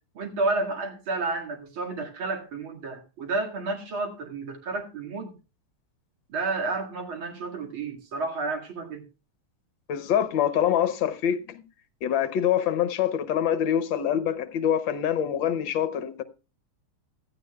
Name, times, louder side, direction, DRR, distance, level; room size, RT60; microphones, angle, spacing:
voice 1, 0.1-5.3 6.3-9.0, right 3 dB, 70° right, 2.9 m, -31 dB
voice 2, 9.9-11.6 12.0-16.2, left 9 dB, 65° left, 1.6 m, -25 dB
16.0 x 12.5 x 2.3 m
omnidirectional pair, 2.4 m